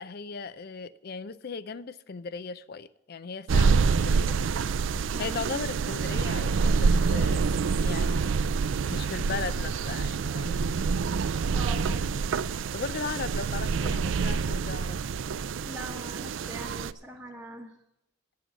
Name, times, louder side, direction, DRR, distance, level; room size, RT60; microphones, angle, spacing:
voice 1, 0.0-4.4 5.2-8.4 8.9-10.8 12.7-15.0, left 5 dB, 50° left, 16 dB, 0.5 m, -37 dB
sound 1, 3.5-16.9, right 5 dB, 75° right, 0.4 m, -27 dB
voice 2, 5.1-5.4 11.5-12.2 15.6-17.7, right 1 dB, 5° right, -3 dB, 1.0 m, -41 dB
9.4 x 8.5 x 7.5 m, 0.84 s
head